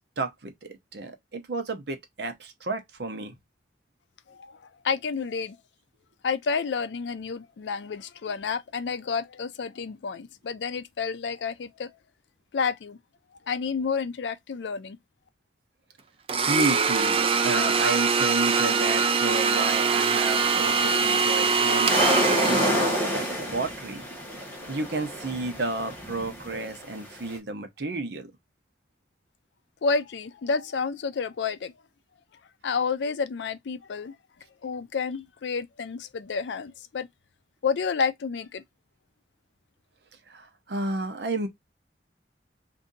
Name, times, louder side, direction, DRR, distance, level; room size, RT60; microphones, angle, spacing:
voice 1, 0.0-3.3 16.5-24.0 24.7-28.3 40.3-41.5, right 2 dB, 70° right, 0.8 m, -32 dB
voice 2, 4.3-5.6 6.2-11.9 12.5-13.0 13.5-15.0 29.8-31.7 32.6-34.2 34.6-37.1 37.6-38.6, left 5 dB, 85° left, 0.4 m, -30 dB
Domestic sounds home sounds, 16.3-23.3, right 5 dB, 30° right, 0.3 m, -23 dB
sound 1, 20.3-27.4, equal, 10° left, 1.1 m, -29 dB
2.6 x 2.6 x 3.7 m
head